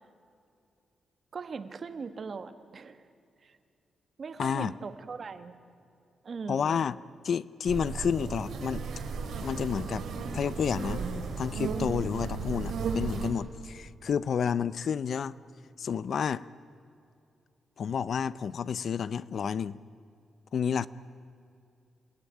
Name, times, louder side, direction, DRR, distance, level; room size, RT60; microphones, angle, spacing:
voice 1, 1.3-3.0 3.4-3.6 4.2-5.6 6.2-6.8, right 5 dB, 40° right, 10 dB, 1.3 m, -40 dB
voice 2, 4.4-4.7 6.5-7.0 7.2-8.8 9.2-10.0 10.3-11.0 11.4-15.4 15.8-16.4 17.8-19.8 20.5-20.9, left 7 dB, 50° left, 17 dB, 0.5 m, -30 dB
sound 1, 7.6-13.3, right 4 dB, 75° right, 3.4 m, -34 dB
28.0 x 17.0 x 10.0 m, 2.5 s
wide cardioid pair, 155°, 0 cm